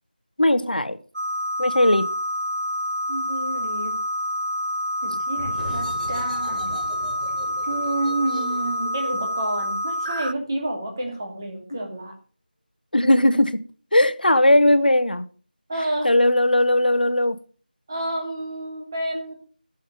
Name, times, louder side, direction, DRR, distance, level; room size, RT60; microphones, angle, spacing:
voice 1, 0.4-1.0 1.6-2.1 12.9-13.6 13.9-15.2 16.0-17.4, left 1 dB, 65° left, 1.2 m, -18 dB
sound 1, 1.1-10.3, equal, 60° right, 0.5 m, -27 dB
voice 2, 3.1-3.9 5.0-6.7 7.7-12.2 15.7-16.1 17.9-19.3, right 1 dB, 20° right, 2.4 m, -29 dB
sound 2, 5.3-10.7, equal, ahead, 1.1 m, -39 dB
13.0 x 7.2 x 6.8 m
figure-of-eight pair, 170°, 5 cm